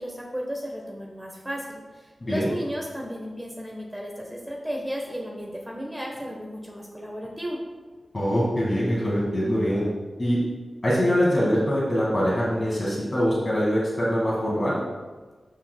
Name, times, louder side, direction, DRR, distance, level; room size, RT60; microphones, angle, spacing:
voice 1, 0.0-7.6, equal, 15° right, -1 dB, 1.2 m, -34 dB
voice 2, 2.2-2.5 8.1-9.8 10.2-10.4 10.8-14.8, equal, 45° left, -7 dB, 2.1 m, -23 dB
12.5 x 4.5 x 2.3 m, 1.3 s
cardioid pair, 45°, 0 cm